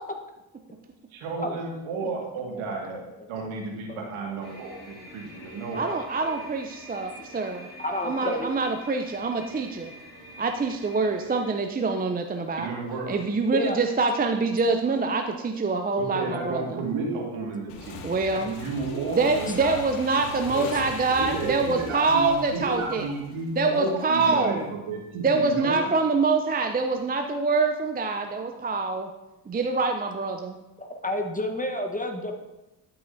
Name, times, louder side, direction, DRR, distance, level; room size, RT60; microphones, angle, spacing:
voice 1, 1.1-3.0 3.3-6.0 12.6-13.1 16.0-18.0 18.3-19.7 20.4-20.7 21.2-25.9, right 3 dB, 70° right, 0 dB, 2.1 m, -32 dB
sound 1, 4.4-11.5, equal, 90° left, 2.1 m, -46 dB
voice 2, 5.7-7.7 8.0-9.9 10.4-12.7 13.1-16.8 18.0-18.6 19.1-23.1 23.6-24.7 25.2-29.1 29.5-30.6, right 3 dB, 20° right, 5 dB, 0.6 m, -25 dB
voice 3, 7.8-8.5 11.5-11.7 12.0-12.6 13.5-13.8 15.1-15.4 17.7-17.9 24.2-24.3 24.9-25.0 30.8-32.3, left 1 dB, 15° left, 4 dB, 1.2 m, -32 dB
Motorcycle / Engine, 17.7-24.1, left 3 dB, 70° left, 1.2 m, -40 dB
12.0 x 5.6 x 2.7 m, 1.0 s
hypercardioid pair, 55°, 50 cm